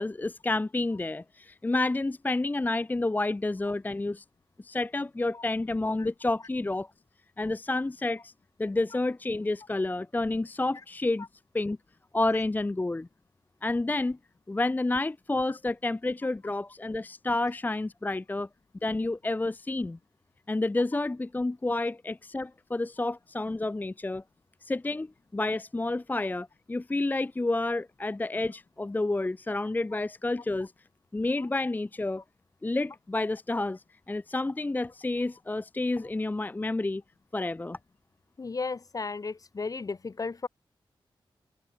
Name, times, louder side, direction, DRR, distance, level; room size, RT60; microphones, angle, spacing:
voice 1, 0.0-4.2 4.6-6.9 7.4-8.3 8.6-11.3 11.5-11.8 12.1-13.1 13.6-14.2 14.5-18.5 18.8-20.0 20.5-24.2 24.6-25.1 25.3-30.7 31.1-32.2 32.6-37.0 37.3-37.8, left 2 dB, 20° left, 0.6 m, -29 dB
voice 2, 38.4-40.5, left 4 dB, 40° left, 1.3 m, -34 dB
wide cardioid pair, 85°, 9 cm